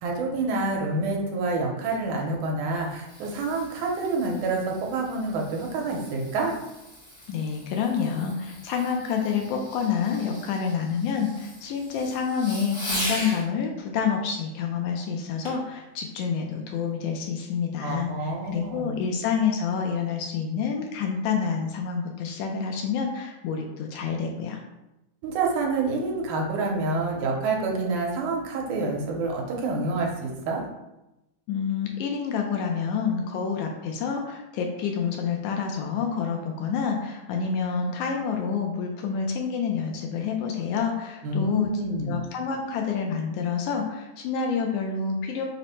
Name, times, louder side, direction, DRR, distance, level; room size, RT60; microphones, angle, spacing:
voice 1, 0.0-6.6 17.8-19.0 25.2-30.6 41.2-42.2, right 3 dB, 80° right, 0 dB, 2.1 m, -27 dB
Fireworks, 2.5-13.4 15.4-15.7 16.3-16.4, left 1 dB, 50° left, 0.8 m, -39 dB
voice 2, 7.3-24.6 31.5-41.7 42.1-45.5, left 6 dB, 80° left, 2 dB, 1.8 m, -28 dB
5.5 x 2.0 x 4.1 m, 0.94 s
omnidirectional pair, 3.5 m